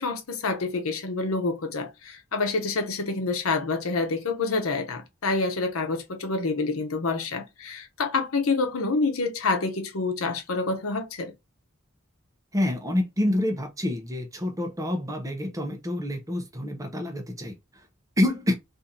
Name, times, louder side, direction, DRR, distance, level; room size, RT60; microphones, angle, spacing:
voice 1, 0.0-11.3, left 3 dB, 85° left, 0.8 m, -27 dB
voice 2, 12.5-17.5 18.2-18.5, left 1 dB, 15° right, 0.7 m, -27 dB
2.8 x 2.6 x 3.7 m
head